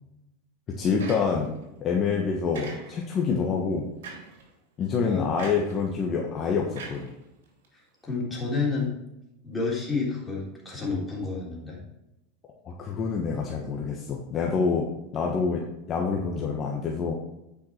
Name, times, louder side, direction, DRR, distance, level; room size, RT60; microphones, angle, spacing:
voice 1, 0.8-1.5 1.8-3.9 4.8-7.1 12.6-14.8 15.1-17.1, left 5 dB, 35° left, 0 dB, 1.3 m, -27 dB
sound 1, 1.0-1.6 2.5-3.2 4.0-4.4 5.4-5.8 6.7-7.6, right 4 dB, 85° right, 2.9 m, -42 dB
voice 2, 5.0-5.4 7.7-8.9 9.4-11.8, left 4 dB, 10° left, -4 dB, 3.4 m, -30 dB
9.1 x 5.7 x 4.4 m, 0.90 s
supercardioid pair, 130°, 0 cm